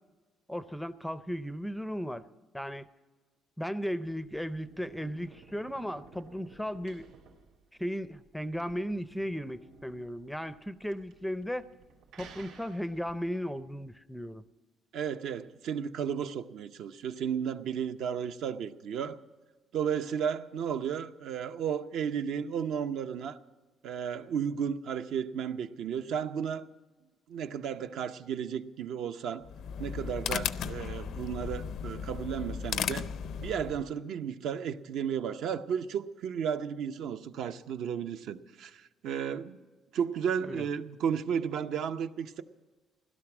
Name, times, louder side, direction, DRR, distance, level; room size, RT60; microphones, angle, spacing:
voice 1, 0.5-2.2 2.5-2.9 3.6-7.1 7.8-11.7 12.2-14.4 40.4-40.6, equal, ahead, 0.5 m, -36 dB
sound 1, 4.0-13.3, right 5 dB, 85° right, 2.8 m, -55 dB
voice 2, 14.9-19.2 19.7-23.4 23.8-26.7 27.3-29.5 29.8-33.1 33.4-39.6 39.9-42.4, right 8 dB, 65° right, 0.7 m, -33 dB
sound 2, 29.4-33.9, left 7 dB, 60° left, 0.4 m, -35 dB
16.5 x 12.0 x 6.0 m
cardioid pair, 155°, 0 cm